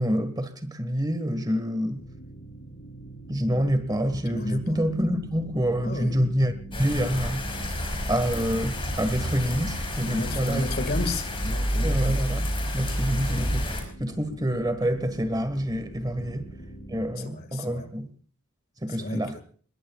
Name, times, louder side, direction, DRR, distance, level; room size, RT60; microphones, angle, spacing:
voice 1, 0.0-2.0 3.3-7.8 8.1-10.7 11.8-16.5 16.9-18.1 18.8-19.4, equal, 20° right, 1.6 m, -27 dB
sound 1, 1.9-17.2, right 2 dB, 80° left, 3.9 m, -43 dB
voice 2, 4.3-4.8 5.8-6.3 10.1-12.2 13.0-13.1 16.2-16.3 17.2-17.9 18.9-19.4, left 2 dB, 45° left, 2.0 m, -33 dB
sound 2, 6.7-13.8, equal, 25° left, 5.1 m, -29 dB
26.5 x 21.5 x 2.4 m
head